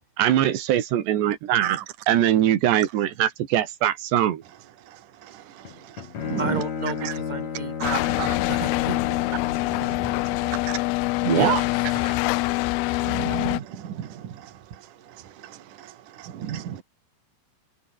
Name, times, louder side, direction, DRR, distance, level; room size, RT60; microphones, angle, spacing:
voice 1, 0.2-1.8 2.1-4.4 11.2-11.6, right 11 dB, 85° right, 4.1 m, -22 dB
voice 2, 4.9-6.6 7.0-7.1 7.8-8.4 9.6-10.8 12.0-12.2 13.0-16.8, right 11 dB, 55° right, 3.3 m, -35 dB
Bowed string instrument, 5.7-9.8, left 7 dB, 45° left, 3.7 m, -32 dB
voice 3, 6.4-9.0 11.3-11.7 12.0-12.2, right 3 dB, 10° right, 3.2 m, -32 dB
sound 1, 7.8-13.6, left 23 dB, 85° left, 2.2 m, -25 dB
omnidirectional pair, 4.9 m